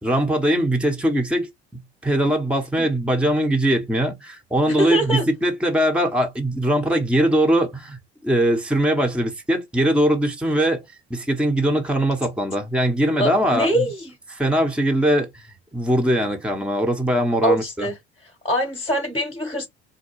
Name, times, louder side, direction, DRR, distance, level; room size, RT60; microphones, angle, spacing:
voice 1, 0.0-1.5 2.0-10.8 11.1-13.9 14.3-15.5 15.7-17.9, right 1 dB, 5° right, 0.9 m, -21 dB
voice 2, 4.7-5.2 13.2-14.1 17.4-17.9 18.4-19.7, equal, 15° left, 1.2 m, -23 dB
3.4 x 2.2 x 3.1 m
figure-of-eight pair, 65°, 35 cm